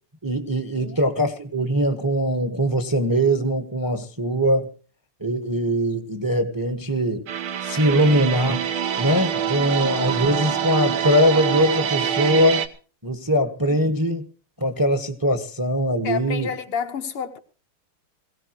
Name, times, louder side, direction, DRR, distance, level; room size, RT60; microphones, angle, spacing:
voice 1, 0.2-4.7 5.2-7.3 7.6-8.6 9.0-12.7 13.0-14.2 14.6-16.5, equal, 15° right, 1.0 m, -21 dB
sound 1, 7.3-12.7, right 9 dB, 70° right, 1.8 m, -25 dB
voice 2, 16.0-17.4, left 6 dB, 80° left, 2.4 m, -29 dB
21.5 x 16.5 x 3.0 m
omnidirectional pair, 2.4 m